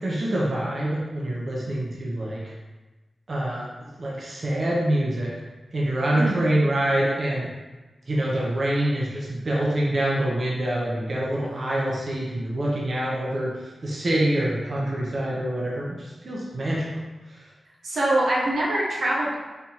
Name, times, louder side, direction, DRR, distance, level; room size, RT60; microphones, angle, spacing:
voice 1, 0.0-2.5 3.3-3.7 4.0-5.3 5.7-7.5 8.1-13.5 13.8-16.9, right 1 dB, 55° right, -4 dB, 0.9 m, -25 dB
voice 2, 6.1-6.6 17.8-19.3, right 1 dB, 90° right, -6 dB, 1.0 m, -24 dB
4.1 x 3.4 x 2.9 m, 1.2 s
wide cardioid pair, 85°, 0 cm